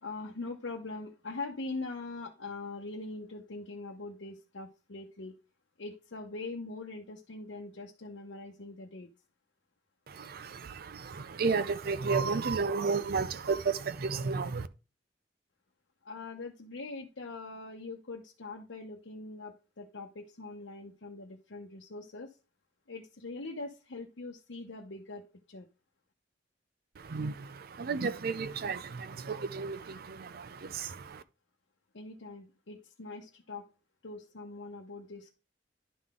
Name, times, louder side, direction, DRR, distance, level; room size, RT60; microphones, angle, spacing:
voice 1, 0.0-5.4 5.8-9.1 16.0-22.3 22.9-25.7 31.9-33.7 34.0-35.3, left 3 dB, 80° left, 0.9 m, -42 dB
voice 2, 10.1-14.7 27.0-31.2, right 4 dB, 55° right, 0.5 m, -33 dB
11.0 x 3.8 x 3.6 m
head